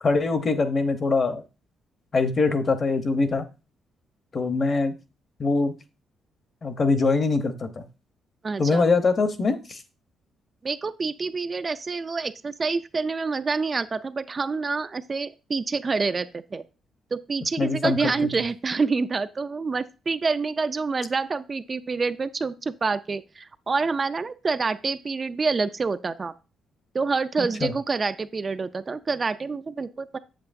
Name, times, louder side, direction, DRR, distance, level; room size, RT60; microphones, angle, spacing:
voice 1, 0.0-1.4 2.1-3.5 4.3-4.9 5.4-5.7 6.6-7.8 8.6-9.8 17.6-18.1 27.4-27.7, left 3 dB, 35° left, 9 dB, 0.8 m, -23 dB
voice 2, 8.4-8.9 10.6-16.6 17.1-26.3 26.9-30.2, right 4 dB, 30° right, 10 dB, 0.4 m, -27 dB
7.9 x 7.6 x 2.6 m, 0.30 s
cardioid pair, 140°, 0 cm